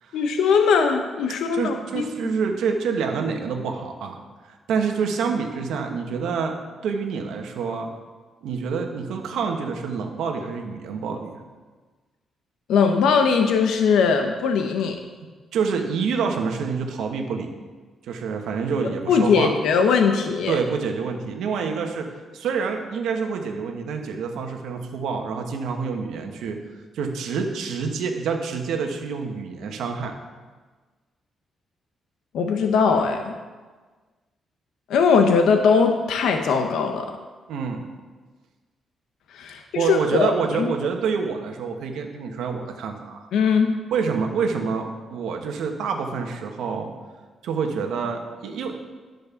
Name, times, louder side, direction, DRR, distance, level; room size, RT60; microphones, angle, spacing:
voice 1, 0.1-2.1 12.7-15.0 18.8-20.6 32.3-33.4 34.9-37.1 39.3-40.7 43.3-43.8, left 5 dB, 85° left, 5 dB, 0.8 m, -20 dB
voice 2, 1.5-4.2 4.5-6.5 6.8-7.9 8.4-11.4 15.5-17.5 18.1-19.5 20.5-22.1 22.3-26.6 26.9-30.1 37.5-37.8 39.7-43.3 43.9-46.9 47.4-48.8, right 5 dB, 90° right, 4 dB, 1.2 m, -27 dB
10.5 x 5.3 x 6.9 m, 1.4 s
cardioid pair, 130°, 0 cm